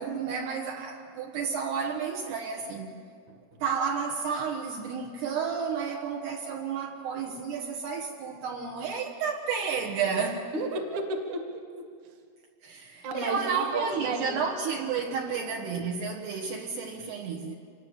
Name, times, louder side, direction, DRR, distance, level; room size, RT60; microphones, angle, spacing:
voice 1, 0.0-2.9 3.6-10.4 12.6-17.5, right 6 dB, 65° right, 0 dB, 3.1 m, -31 dB
voice 2, 10.5-11.9 13.0-14.4 15.3-15.4, right 2 dB, 50° right, 4 dB, 2.8 m, -33 dB
26.0 x 21.0 x 7.4 m, 2.1 s
omnidirectional pair, 5.5 m